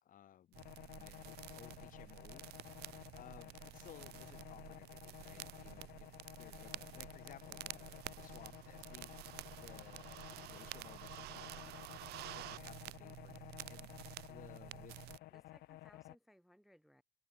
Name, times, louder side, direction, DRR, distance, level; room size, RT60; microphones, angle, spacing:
voice 1, 0.0-10.2 10.5-13.9 14.3-15.1, left 11 dB, 50° left, 1.0 m, -60 dB
sound 1, 0.5-15.2, right 18 dB, 75° right, 0.5 m, -51 dB
sound 2, 0.6-16.2, left 17 dB, 70° left, 0.5 m, -54 dB
sound 3, 8.4-9.8 10.1-11.6, right 8 dB, 40° right, 3.3 m, -74 dB
voice 2, 15.3-17.0, equal, ahead, 0.4 m, -66 dB
open air
cardioid pair, 110°, 17 cm